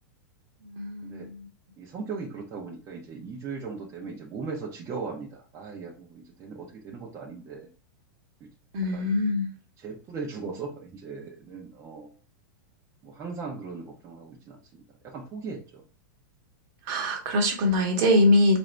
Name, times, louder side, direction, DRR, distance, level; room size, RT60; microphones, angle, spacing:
voice 1, 0.6-1.5 8.7-9.5 16.8-18.6, left 1 dB, 50° right, 2 dB, 1.1 m, -23 dB
voice 2, 1.8-7.7 8.4-8.5 8.9-9.1 9.8-12.1 13.0-14.6 15.0-15.8, right 4 dB, 25° right, -3 dB, 0.8 m, -38 dB
4.0 x 2.6 x 3.3 m, 0.36 s
hypercardioid pair, 135°, 11 cm